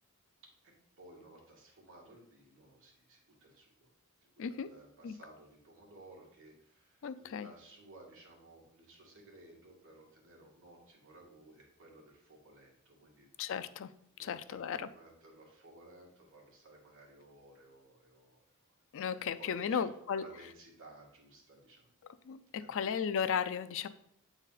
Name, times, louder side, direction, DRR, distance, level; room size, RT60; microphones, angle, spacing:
voice 1, 1.0-3.9 4.5-13.3 14.1-18.7 19.2-19.9 20.1-21.9 22.6-22.9, right 1 dB, 60° right, -2 dB, 2.1 m, -57 dB
voice 2, 7.0-7.5 13.4-13.9 14.2-14.9 18.9-20.2 22.2-23.9, left 7 dB, 60° left, 13 dB, 0.4 m, -35 dB
8.2 x 4.0 x 4.0 m, 0.70 s
head